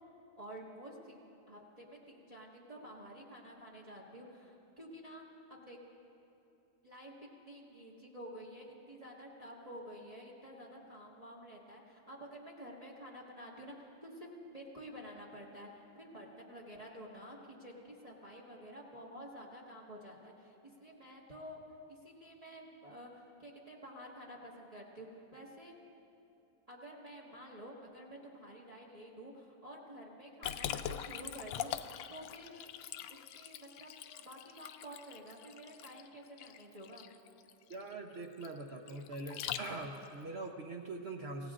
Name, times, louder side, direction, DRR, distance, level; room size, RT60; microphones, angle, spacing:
voice 1, 0.4-5.8 6.8-21.6 21.9-25.8 26.7-32.7 33.1-37.1, equal, 20° right, -3 dB, 1.4 m, -50 dB
Liquid, 30.4-40.1, left 10 dB, 85° left, 1.3 m, -43 dB
voice 2, 37.7-41.5, right 2 dB, 55° right, 2 dB, 0.7 m, -43 dB
26.5 x 16.5 x 2.5 m, 2.8 s
omnidirectional pair, 2.1 m